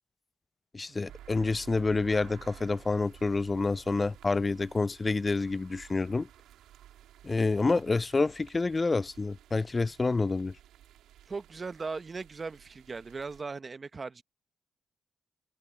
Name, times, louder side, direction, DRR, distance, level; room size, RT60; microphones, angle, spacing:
voice 1, 0.7-6.3 7.2-10.6, left 3 dB, 30° left, 0.3 m, -28 dB
sound 1, 1.1-13.4, right 12 dB, 90° right, 3.1 m, -53 dB
voice 2, 11.3-14.2, right 4 dB, 40° right, 1.1 m, -38 dB
supercardioid pair, 60°, 0 cm